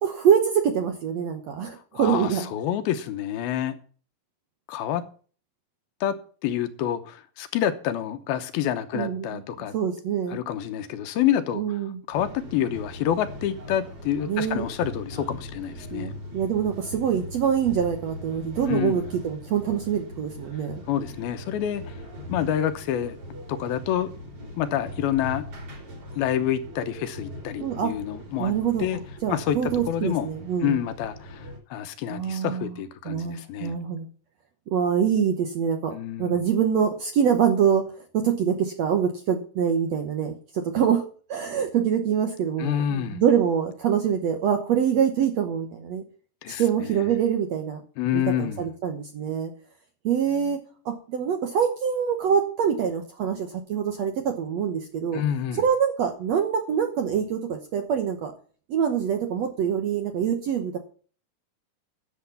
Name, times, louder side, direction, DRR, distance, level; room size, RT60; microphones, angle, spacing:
voice 1, 0.0-2.5 8.9-9.4 9.7-10.4 11.6-12.0 14.3-14.7 15.9-20.8 27.6-27.9 28.4-28.9 29.2-30.8 32.1-32.8 33.1-34.1 34.7-35.9 36.2-41.0 41.3-46.0 46.6-47.8 48.1-49.5 50.0-50.6 50.9-55.2 55.6-58.3 58.7-60.8, right 8 dB, 70° right, 1.7 m, -25 dB
voice 2, 1.9-3.8 4.7-5.1 6.0-6.2 6.4-9.7 10.3-11.8 12.1-16.1 18.7-19.1 20.9-22.0 22.3-23.2 23.5-24.1 24.6-25.4 26.2-28.5 28.8-29.0 29.3-29.6 29.9-30.3 30.6-33.8 35.9-36.4 42.6-43.2 46.4-47.1 48.0-48.6 55.1-55.6, left 10 dB, 85° left, 2.8 m, -28 dB
sound 1, 12.1-31.6, equal, 40° right, 3.8 m, -40 dB
10.0 x 7.3 x 7.0 m
omnidirectional pair, 4.3 m